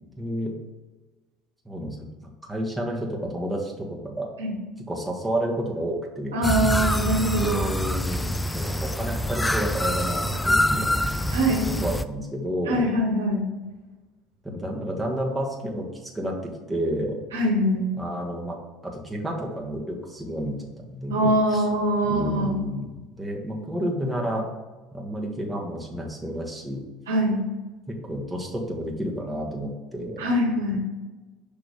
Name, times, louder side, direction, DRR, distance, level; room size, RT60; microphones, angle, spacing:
voice 1, 0.2-0.5 1.6-4.3 4.9-6.4 7.3-10.9 11.8-12.9 14.4-15.9 16.1-17.2 18.0-18.6 18.8-21.2 21.5-21.6 22.0-24.5 24.9-26.8 27.9-30.2, equal, 10° right, -1 dB, 1.5 m, -30 dB
voice 2, 6.3-7.6 11.3-11.8 12.7-13.4 17.3-17.8 21.1-22.6 27.1-27.4 30.2-30.8, right 1 dB, 85° right, -4 dB, 1.3 m, -23 dB
sound 1, 6.4-12.0, left 1 dB, 10° left, 0.3 m, -25 dB
6.1 x 3.3 x 5.1 m, 1.2 s
hypercardioid pair, 70°, 0 cm